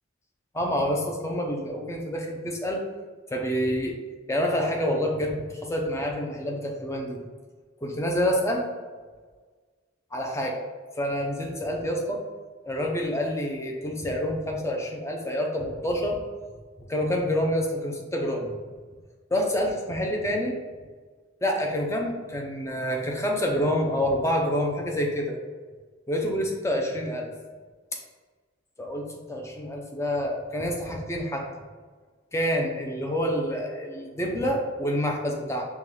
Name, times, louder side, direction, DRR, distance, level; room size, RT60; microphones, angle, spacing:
voice 1, 0.5-2.8 3.3-4.0 4.3-7.2 7.8-8.7 10.1-10.6 11.0-12.2 12.6-16.2 16.9-18.5 19.3-20.6 21.4-25.4 26.1-27.3 28.8-31.6 32.3-35.7, equal, 15° left, 0 dB, 0.5 m, -27 dB
5.4 x 2.3 x 3.1 m, 1.5 s
head